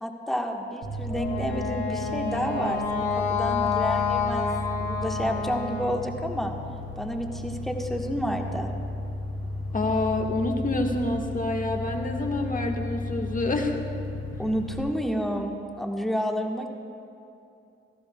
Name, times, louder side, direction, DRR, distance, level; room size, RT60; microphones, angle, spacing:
voice 1, 0.0-4.5 4.8-6.5 7.0-8.7 14.4-16.7, equal, ahead, 2 dB, 1.3 m, -30 dB
sound 1, 0.8-14.8, left 2 dB, 60° right, 2.4 m, -34 dB
Wind instrument woodwind instrument, 1.1-6.1, left 5 dB, 70° left, 1.0 m, -29 dB
voice 2, 9.7-13.8, left 2 dB, 25° left, 2 dB, 1.5 m, -27 dB
16.0 x 14.0 x 2.3 m, 2.7 s
hypercardioid pair, 40°, 31 cm